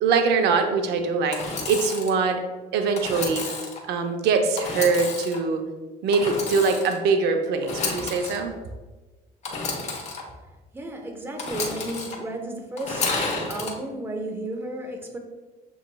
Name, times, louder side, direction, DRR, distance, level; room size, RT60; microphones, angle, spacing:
voice 1, 0.0-2.4 2.7-3.4 3.9-5.6 6.0-8.5, right 4 dB, 80° right, 6 dB, 0.5 m, -23 dB
Engine / Sawing, 1.3-2.1 2.9-3.8 4.6-5.4 6.1-7.0 7.6-8.4 9.4-10.2 11.4-12.2 12.8-13.7, left 3 dB, 40° left, 1.0 m, -30 dB
voice 2, 10.7-13.1 13.5-15.2, right 1 dB, 15° right, 2 dB, 0.7 m, -33 dB
7.2 x 3.0 x 2.2 m, 1.2 s
cardioid pair, 110°, 17 cm